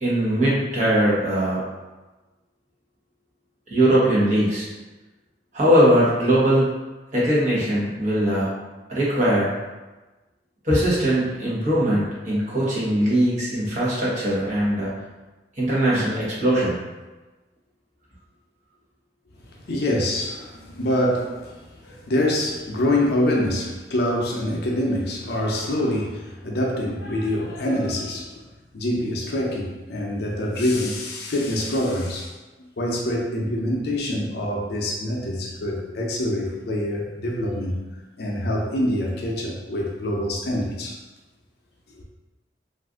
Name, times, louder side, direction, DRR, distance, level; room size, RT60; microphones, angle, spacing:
voice 1, 0.0-1.6 3.7-4.7 5.5-6.7 7.1-8.5 8.9-9.5 10.6-14.9 15.6-16.8, right 1 dB, 40° right, -7 dB, 1.0 m, -20 dB
voice 2, 19.6-21.6 21.8-28.3 28.7-32.3 32.8-37.8 38.2-41.0 42.0-42.1, left 1 dB, 60° left, -1 dB, 0.5 m, -25 dB
2.5 x 2.4 x 3.5 m, 1.2 s
head